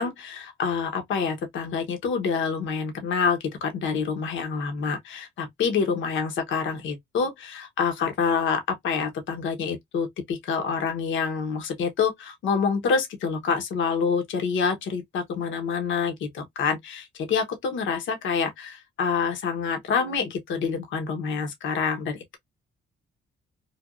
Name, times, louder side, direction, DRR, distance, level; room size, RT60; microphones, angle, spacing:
voice 1, 0.0-22.4, left 5 dB, 75° left, 1.0 m, -27 dB
3.3 x 2.3 x 2.4 m
cardioid pair, 90°, 20 cm